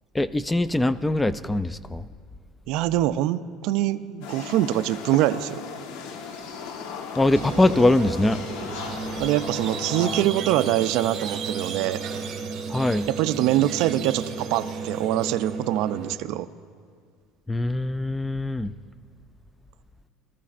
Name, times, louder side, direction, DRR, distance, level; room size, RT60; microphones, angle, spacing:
voice 1, 0.1-2.1 7.2-8.4 12.7-13.1 17.5-18.7, left 2 dB, 5° left, 15 dB, 0.3 m, -22 dB
voice 2, 2.7-5.6 9.2-12.0 13.1-16.5, right 14 dB, 65° right, 11 dB, 0.4 m, -24 dB
sound 1, 4.2-10.2, left 6 dB, 80° left, 1.1 m, -36 dB
Squeak, 7.4-16.1, right 5 dB, 45° right, 2.2 m, -33 dB
23.5 x 13.5 x 2.5 m, 2.1 s
cardioid pair, 150°, 0 cm